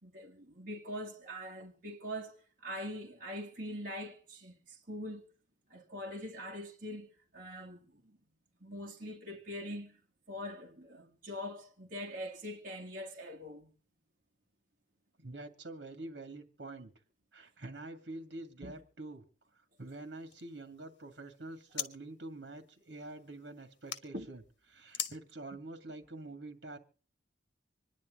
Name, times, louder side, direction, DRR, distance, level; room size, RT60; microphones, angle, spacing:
voice 1, 0.0-5.3 5.7-8.2 8.6-10.0 10.3-13.7 18.6-18.7 24.1-24.3, equal, 50° right, 2.2 m, -43 dB
voice 2, 15.2-16.9 17.3-19.2 19.5-24.4 24.7-26.8, right 2 dB, 70° right, 2.1 m, -46 dB
sound 1, 19.8-21.9 22.2-24.0 24.9-25.2, left 9 dB, 75° left, 1.5 m, -44 dB
26.0 x 10.5 x 3.7 m
head